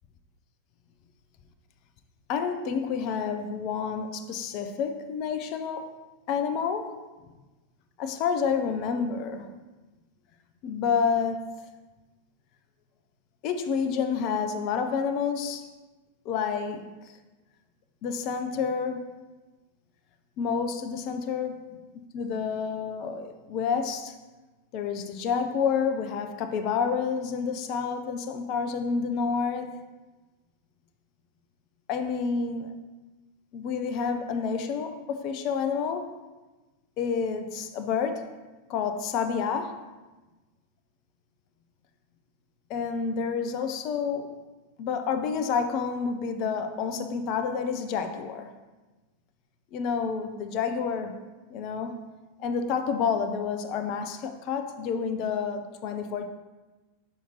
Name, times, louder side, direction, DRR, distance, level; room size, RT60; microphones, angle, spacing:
voice 1, 2.3-6.0 6.3-6.9 8.0-9.5 10.6-11.5 13.4-15.7 16.2-17.2 18.0-19.0 20.4-21.5 22.1-24.2 24.7-29.7 31.9-32.8 33.5-36.2 37.0-38.3 38.7-39.8 42.7-44.4 44.8-48.5 49.7-51.2 51.5-52.0 52.4-56.3, left 6 dB, 40° left, 0.5 m, -29 dB
5.8 x 5.6 x 3.0 m
figure-of-eight pair, 90°, 0 cm